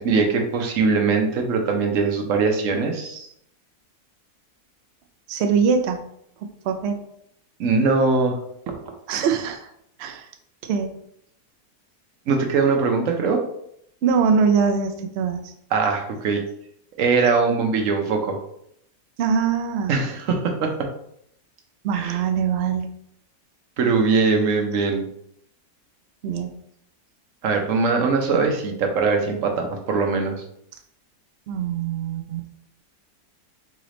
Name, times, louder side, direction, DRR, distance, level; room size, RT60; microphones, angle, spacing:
voice 1, 0.0-3.3 7.6-8.4 8.7-8.8 12.3-13.4 15.7-16.4 17.0-18.4 19.9-20.9 21.9-22.2 23.8-25.1 27.4-30.4, right 4 dB, 60° right, 4 dB, 1.0 m, -21 dB
voice 2, 5.3-6.0 6.4-7.0 9.1-9.7 10.0-10.3 10.6-11.0 14.0-15.5 19.2-20.0 21.8-22.9 26.2-26.6 28.3-28.5 31.5-32.4, right 6 dB, 90° right, 6 dB, 0.5 m, -23 dB
3.9 x 3.2 x 3.8 m, 0.72 s
omnidirectional pair, 1.7 m